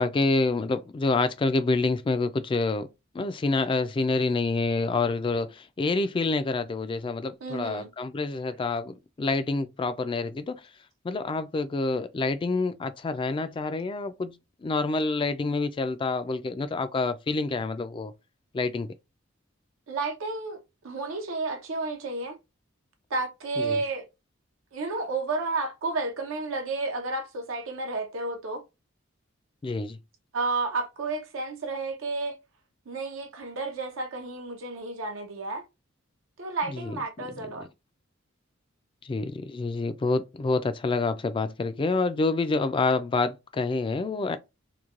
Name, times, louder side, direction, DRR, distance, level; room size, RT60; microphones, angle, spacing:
voice 1, 0.0-2.9 3.1-10.6 11.0-14.4 14.6-18.1 18.5-18.9 23.6-23.8 29.6-30.0 36.7-37.0 39.0-44.4, left 3 dB, 25° left, 0.3 m, -27 dB
voice 2, 7.4-7.9 19.9-20.6 20.8-22.4 23.1-24.1 24.7-28.6 30.3-32.4 32.9-35.6 36.4-37.7, right 3 dB, 75° right, 0.6 m, -31 dB
3.0 x 2.2 x 2.4 m
head